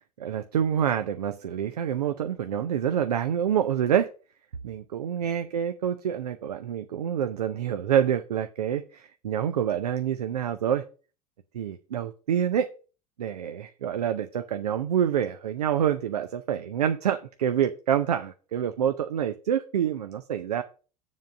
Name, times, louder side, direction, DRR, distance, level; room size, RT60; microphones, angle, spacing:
voice 1, 0.2-4.1 4.6-10.8 11.5-12.7 13.2-20.6, right 9 dB, 85° right, 9 dB, 0.6 m, -27 dB
7.3 x 3.8 x 6.5 m, 0.36 s
hypercardioid pair, 70°, 20 cm